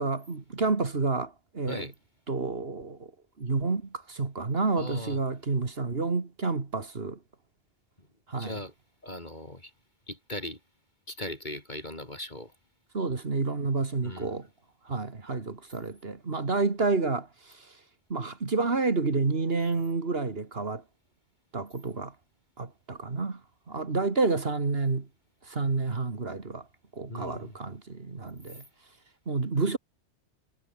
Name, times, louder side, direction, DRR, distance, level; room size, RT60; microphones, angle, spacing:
voice 1, 0.0-1.9 2.3-3.1 3.4-7.2 8.3-8.6 12.9-14.5 14.8-17.8 18.1-20.8 21.5-22.2 22.6-25.1 25.4-26.7 26.9-28.6 29.3-29.8, right 3 dB, 55° right, 2.3 m, -29 dB
voice 2, 4.8-5.2 8.0-8.1 8.4-8.7 9.0-9.7 10.1-10.6 11.1-12.5 14.0-14.3 27.1-27.5 28.5-28.6, left 1 dB, 40° left, 5.0 m, -39 dB
omnidirectional pair, 1.2 m